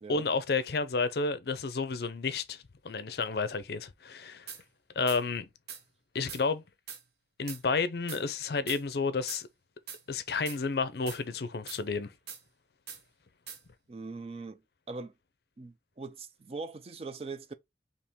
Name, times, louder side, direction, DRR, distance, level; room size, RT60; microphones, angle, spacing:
voice 1, 0.1-4.5 5.0-5.5 6.1-6.6 7.4-9.5 10.1-12.1, left 4 dB, 60° left, 0.5 m, -31 dB
sound 1, 4.5-4.6 5.1-5.2 5.7-5.8 6.3-6.4 6.9-7.0 7.5-7.6 8.1-8.2 8.7-8.8 9.3-9.4 9.9-10.0 10.5-10.6 11.1-11.2 11.7-11.8 12.3-12.4 12.9-13.0 13.5-13.6, right 7 dB, 65° right, 0.8 m, -42 dB
voice 2, 13.9-14.6 14.9-15.1 15.6-17.5, right 3 dB, 35° right, 0.4 m, -41 dB
4.3 x 2.8 x 3.5 m
head